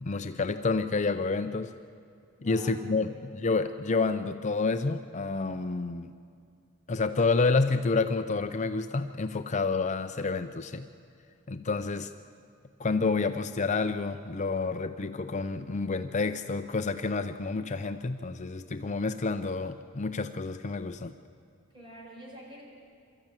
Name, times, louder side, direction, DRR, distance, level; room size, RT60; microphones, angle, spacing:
voice 1, 0.0-1.7 2.5-6.1 6.9-10.9 11.5-12.1 12.8-21.1, left 3 dB, 35° left, 8 dB, 0.5 m, -29 dB
voice 2, 2.4-2.8 3.1-3.3 11.7-11.9 21.7-22.6, equal, 25° right, -2 dB, 5.5 m, -47 dB
24.5 x 13.5 x 8.9 m, 2.4 s
head